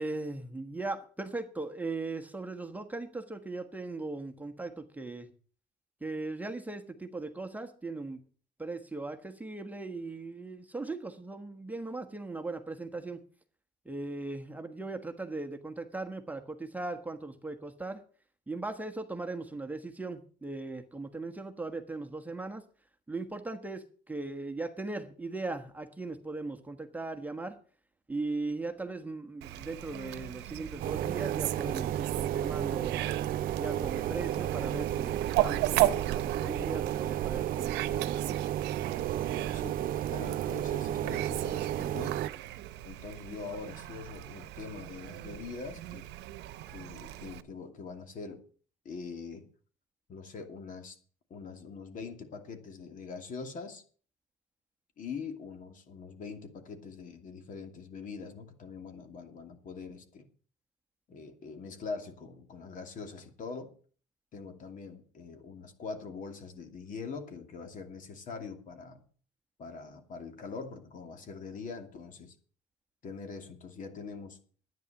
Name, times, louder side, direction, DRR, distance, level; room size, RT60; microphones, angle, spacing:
voice 1, 0.0-5.3 6.0-8.2 8.6-13.2 13.8-18.0 18.5-22.6 23.1-27.6 28.1-33.0 33.6-38.4, right 3 dB, 10° right, 5 dB, 1.3 m, -38 dB
Fowl, 29.4-47.4, right 15 dB, 85° right, 0.9 m, -36 dB
sound 1, 30.8-42.3, right 11 dB, 55° right, 0.5 m, -32 dB
voice 2, 39.2-42.2 42.8-46.1 46.7-48.4 48.8-49.5 50.1-51.0 51.3-53.8 55.0-60.3 61.1-63.7 64.3-69.0 69.6-72.3 73.0-74.4, left 4 dB, 50° left, 6 dB, 2.6 m, -43 dB
11.0 x 9.5 x 7.0 m, 0.43 s
cardioid pair, 110°, 17 cm